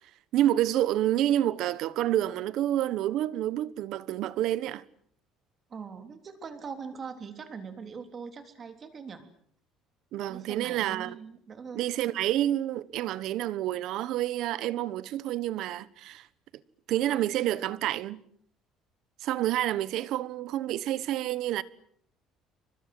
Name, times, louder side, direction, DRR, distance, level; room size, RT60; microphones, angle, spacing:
voice 1, 0.3-4.8 10.1-11.2 11.7-16.3 16.9-18.2 19.2-21.6, right 13 dB, 55° right, 1.1 m, -28 dB
voice 2, 5.7-9.3 10.3-11.8, right 5 dB, 25° right, 3.3 m, -42 dB
28.5 x 24.5 x 7.8 m
cardioid pair, 170°, 0 cm